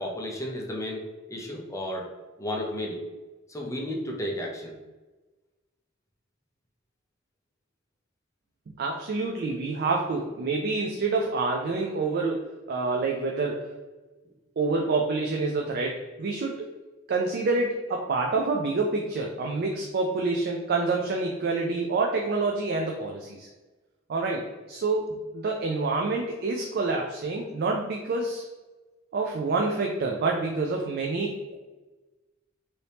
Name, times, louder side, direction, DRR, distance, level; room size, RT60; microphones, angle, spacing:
voice 1, 0.0-2.1 2.4-3.0 3.5-4.8, left 1 dB, 15° left, -1 dB, 0.6 m, -33 dB
voice 2, 8.8-13.7 14.6-16.7 17.1-23.5 24.1-28.4 29.1-31.5, right 3 dB, 55° right, 0 dB, 0.4 m, -27 dB
2.8 x 2.7 x 3.3 m, 1.2 s
head